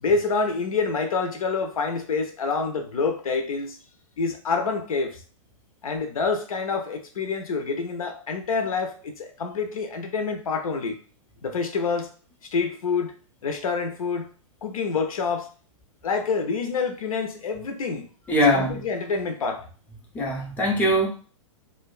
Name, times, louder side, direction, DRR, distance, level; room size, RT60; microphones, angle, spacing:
voice 1, 0.0-3.8 4.2-5.2 5.8-11.0 11.4-12.1 12.5-13.2 13.4-14.3 14.6-15.5 16.0-19.6, left 4 dB, 85° left, 5 dB, 0.5 m, -27 dB
voice 2, 18.3-18.8 20.1-21.1, equal, 10° left, -2 dB, 0.5 m, -21 dB
2.5 x 2.2 x 2.3 m, 0.39 s
hypercardioid pair, 130°, 17 cm